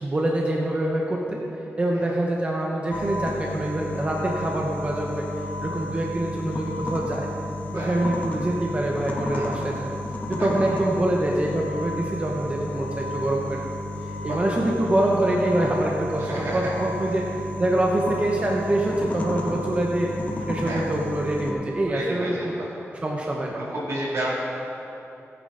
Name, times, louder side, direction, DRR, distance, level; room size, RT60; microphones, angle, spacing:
voice 1, 0.0-1.4 1.8-5.3 5.6-7.3 7.7-9.9 10.3-13.7 14.2-17.3 17.6-20.1 20.5-22.5 23.0-23.6, right 1 dB, 25° right, -2 dB, 1.0 m, -25 dB
sound 1, 2.9-21.5, left 1 dB, 35° left, 1.1 m, -32 dB
voice 2, 9.3-9.6 10.4-10.5 14.2-14.4 16.2-16.8 17.1-17.2 20.6-20.8 21.8-22.8 23.5-24.3, right 1 dB, 75° right, -6 dB, 3.2 m, -31 dB
16.5 x 9.6 x 3.9 m, 2.9 s
wide cardioid pair, 180°, 5 cm